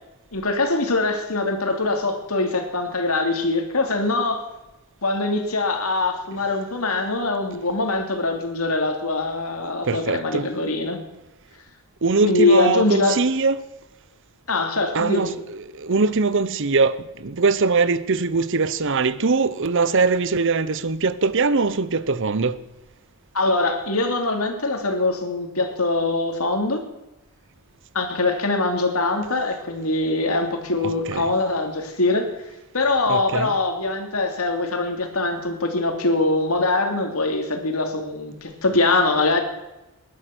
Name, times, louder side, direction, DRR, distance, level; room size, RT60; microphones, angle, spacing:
voice 1, 0.3-4.4 5.0-11.0 12.2-13.2 14.5-15.3 23.3-26.8 27.9-32.3 32.7-39.4, left 2 dB, 80° left, 2.9 m, -23 dB
voice 2, 9.8-10.5 12.0-13.6 14.9-22.6 30.8-31.3 33.1-33.5, right 4 dB, 60° right, 0.8 m, -22 dB
20.0 x 11.5 x 6.1 m
head